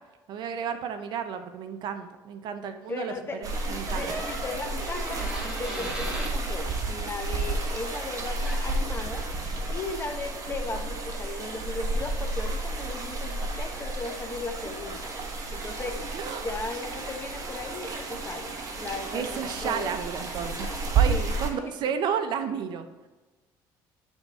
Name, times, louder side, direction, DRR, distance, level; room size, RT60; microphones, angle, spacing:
voice 1, 0.3-3.1 3.4-4.1 16.1-16.5 19.1-22.9, right 7 dB, 60° right, 8 dB, 0.7 m, -32 dB
voice 2, 2.9-3.5 3.9-5.3 5.6-9.3 9.7-15.1 15.5-16.1 16.4-19.9 21.1-21.6, left 3 dB, 30° left, 5 dB, 0.9 m, -37 dB
sound 1, 3.4-21.5, right 3 dB, 40° right, 1.3 m, -31 dB
Door, 3.8-6.4 8.2-8.3 8.4-8.8, right 1 dB, 10° right, 2.1 m, -37 dB
9.6 x 3.6 x 4.2 m, 1.2 s
supercardioid pair, 95°, 8 cm